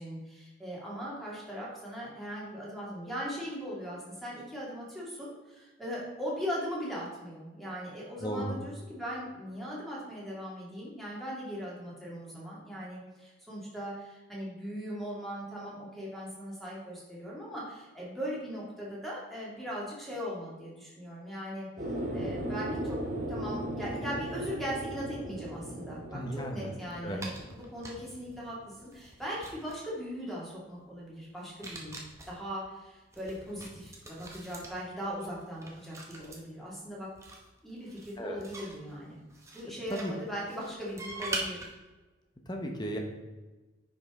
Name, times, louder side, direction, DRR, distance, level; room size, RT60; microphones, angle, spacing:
voice 1, 0.0-21.7 22.1-23.0 23.3-32.0 32.3-37.1 37.6-39.2 39.5-41.6, equal, ahead, -6 dB, 2.1 m, -39 dB
voice 2, 8.2-8.6 26.1-26.7 27.0-27.2 38.2-38.4 39.9-40.1 42.5-43.0, equal, 20° left, 2 dB, 0.9 m, -35 dB
sound 1, 21.8-28.6, right 1 dB, 40° right, 1.5 m, -37 dB
sound 2, 27.1-28.3 28.8-29.9 31.5-32.4 33.1-36.4 37.2-39.6 39.9-41.7, right 2 dB, 15° right, 1.0 m, -42 dB
9.8 x 5.3 x 3.7 m, 1.2 s
head